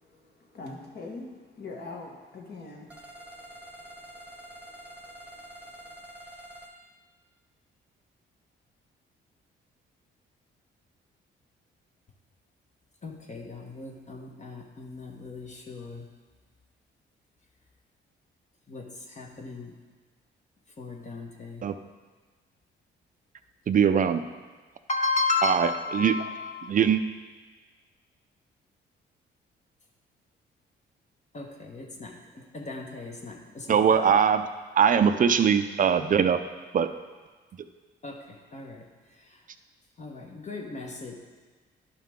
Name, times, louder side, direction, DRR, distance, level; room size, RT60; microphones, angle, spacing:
voice 1, 0.5-2.9 5.3-5.4, left 3 dB, 55° left, 0 dB, 1.7 m, -41 dB
sound 1, 2.9-6.7, right 1 dB, 5° right, 1.1 m, -46 dB
voice 2, 13.0-16.1 18.7-19.7 20.8-21.6 24.9-26.5 31.3-34.0 38.0-38.8 40.0-41.1, left 3 dB, 35° left, 1 dB, 1.1 m, -34 dB
voice 3, 23.7-24.2 25.4-26.2 26.7-27.0 33.7-34.5 34.8-36.4 36.7-36.9, right 7 dB, 40° right, 10 dB, 0.5 m, -21 dB
11.5 x 5.6 x 3.6 m, 1.4 s
cardioid pair, 90°, 20 cm